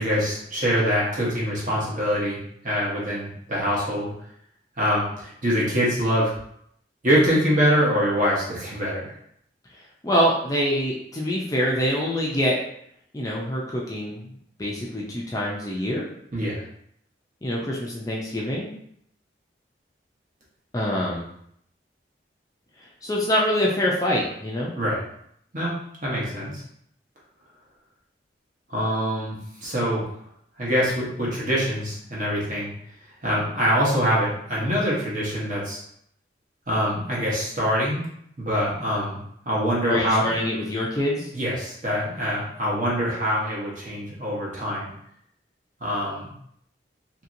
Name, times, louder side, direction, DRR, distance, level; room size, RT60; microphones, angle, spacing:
voice 1, 0.0-4.1 4.8-6.3 7.0-9.1 16.3-16.6 24.8-25.0 25.5-25.7 26.0-26.6 28.7-30.0 30.6-32.7 33.2-35.8 36.7-38.0 38.4-39.2 39.4-40.4 41.3-44.9 45.8-46.3, equal, 45° right, -6 dB, 1.0 m, -24 dB
voice 2, 10.0-12.6 13.1-14.2 14.6-16.0 17.4-18.7 20.7-21.2 23.0-24.7 39.8-41.3, equal, 20° left, -3 dB, 0.4 m, -25 dB
2.9 x 2.8 x 2.6 m, 0.70 s
head